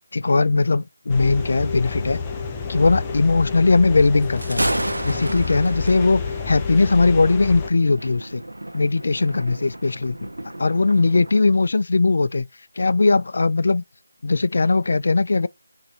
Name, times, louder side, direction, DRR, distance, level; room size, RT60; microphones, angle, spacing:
voice 1, 0.1-2.2 2.7-4.6 5.0-8.4 8.7-10.2 10.6-12.5 12.8-13.8 14.2-15.5, left 3 dB, 55° left, 0.3 m, -19 dB
sound 1, 1.1-7.7, left 5 dB, 15° left, 0.6 m, -29 dB
Thunder, 4.2-11.5, right 1 dB, 90° right, 0.6 m, -32 dB
4.1 x 2.6 x 3.2 m
figure-of-eight pair, 165°, 0 cm